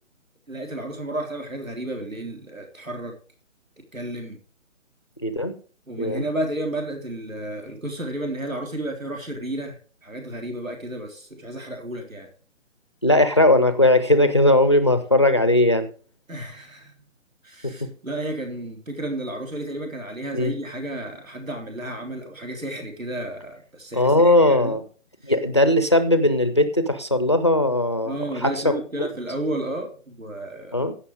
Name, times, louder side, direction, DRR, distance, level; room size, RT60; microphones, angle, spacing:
voice 1, 0.5-3.1 3.8-4.4 5.9-12.3 16.3-16.9 17.4-24.8 28.1-30.9, right 1 dB, 90° right, 3 dB, 3.9 m, -32 dB
voice 2, 5.2-5.5 6.0-6.3 13.0-15.9 17.6-17.9 20.3-20.5 23.9-24.8 25.2-29.1 30.7-30.9, left 1 dB, 20° left, 11 dB, 0.5 m, -19 dB
16.0 x 5.6 x 5.0 m, 0.39 s
figure-of-eight pair, 145°, 39 cm